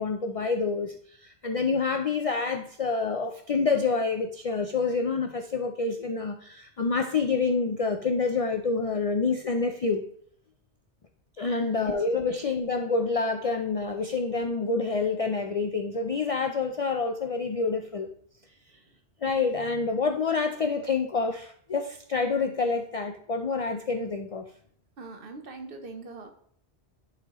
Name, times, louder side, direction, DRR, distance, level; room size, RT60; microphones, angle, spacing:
voice 1, 0.0-10.0 11.4-18.1 19.2-24.5, left 4 dB, 60° left, 6 dB, 0.3 m, -27 dB
voice 2, 11.6-12.0 25.0-26.3, right 3 dB, 55° right, 5 dB, 1.0 m, -42 dB
10.5 x 4.2 x 3.0 m, 0.63 s
omnidirectional pair, 1.2 m